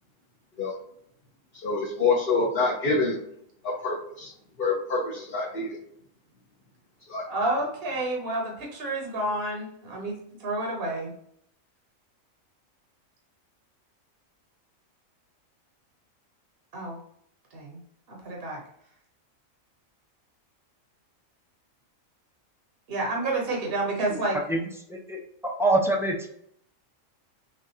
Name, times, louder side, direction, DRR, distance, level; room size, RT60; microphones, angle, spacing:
voice 1, 1.6-3.2 3.6-4.3 4.6-5.7 7.1-7.2, left 3 dB, 45° left, -5 dB, 1.1 m, -26 dB
voice 2, 7.3-10.1 10.4-11.1 16.7-17.0 17.5-17.8 18.1-18.6 22.9-24.4, right 2 dB, 50° right, -1 dB, 1.2 m, -29 dB
voice 3, 25.6-26.1, right 2 dB, 5° right, -1 dB, 0.5 m, -24 dB
6.2 x 2.5 x 2.8 m, 0.71 s
omnidirectional pair, 1.4 m